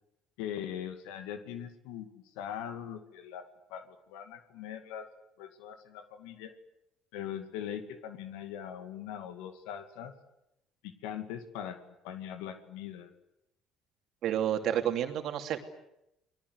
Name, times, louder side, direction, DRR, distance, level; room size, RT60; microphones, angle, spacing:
voice 1, 0.4-5.1 5.4-6.5 7.1-10.1 10.8-13.1, left 9 dB, 80° left, 9 dB, 2.3 m, -41 dB
voice 2, 14.2-15.6, right 10 dB, 65° right, 6 dB, 2.9 m, -30 dB
29.5 x 21.0 x 8.1 m, 0.85 s
hypercardioid pair, 70°, 0 cm